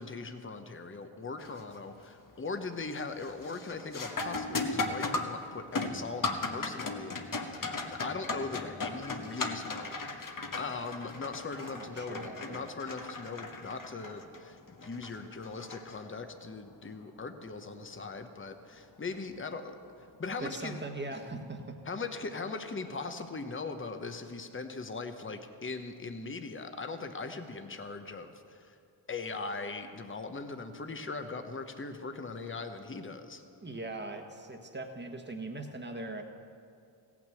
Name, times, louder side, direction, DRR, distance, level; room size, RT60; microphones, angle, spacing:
voice 1, 0.0-20.8 21.1-21.2 21.9-28.8 29.1-33.4, left 4 dB, 25° left, 7 dB, 1.0 m, -40 dB
sound 1, 1.4-1.8 2.2-2.6 3.0-16.5 19.0-19.1 19.9-20.2, left 3 dB, 40° left, 1.2 m, -37 dB
voice 2, 11.6-12.7 20.4-21.8 33.6-36.2, right 2 dB, 20° right, 4 dB, 1.4 m, -40 dB
16.0 x 6.1 x 7.7 m, 2.3 s
cardioid pair, 50°, 48 cm